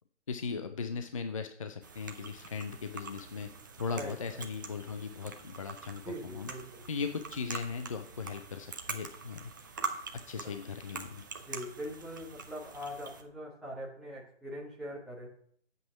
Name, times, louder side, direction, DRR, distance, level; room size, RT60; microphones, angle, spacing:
voice 1, 0.3-3.5 3.8-6.5 6.9-9.5 10.3-11.2, left 5 dB, 30° left, 7 dB, 0.6 m, -38 dB
sound 1, 1.8-13.2, right 4 dB, 15° right, 0.6 m, -44 dB
voice 2, 3.9-4.4 6.0-6.8 10.3-10.5 11.4-15.3, equal, ahead, -6 dB, 1.2 m, -42 dB
11.0 x 7.9 x 5.7 m, 0.63 s
figure-of-eight pair, 150°, 36 cm